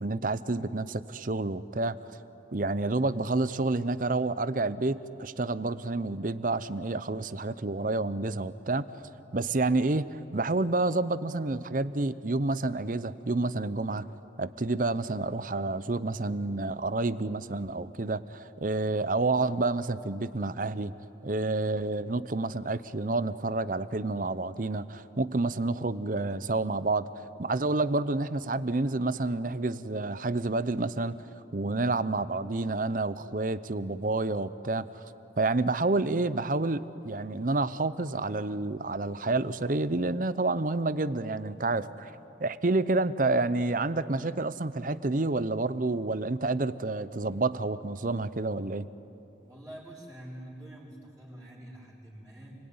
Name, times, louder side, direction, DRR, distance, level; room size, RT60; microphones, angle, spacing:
voice 1, 0.0-1.9 2.5-8.9 9.3-14.1 14.4-20.9 21.2-27.1 27.4-31.2 31.5-34.8 35.4-42.1 42.4-48.9, right 2 dB, 45° right, 15 dB, 0.7 m, -29 dB
voice 2, 49.4-52.5, right 1 dB, 5° right, -10 dB, 4.3 m, -46 dB
29.0 x 21.0 x 9.6 m, 2.9 s
head